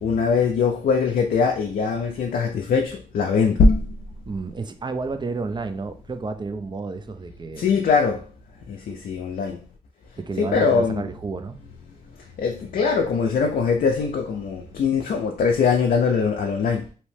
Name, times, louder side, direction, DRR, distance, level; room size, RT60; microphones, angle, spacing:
voice 1, 0.0-4.0 7.6-8.2 8.7-9.6 10.4-11.1 12.4-16.8, left 5 dB, 75° left, 0.4 m, -21 dB
voice 2, 4.3-7.6 10.2-11.6, right 4 dB, 30° right, 0.4 m, -31 dB
2.8 x 2.1 x 3.2 m
cardioid pair, 55°, 15 cm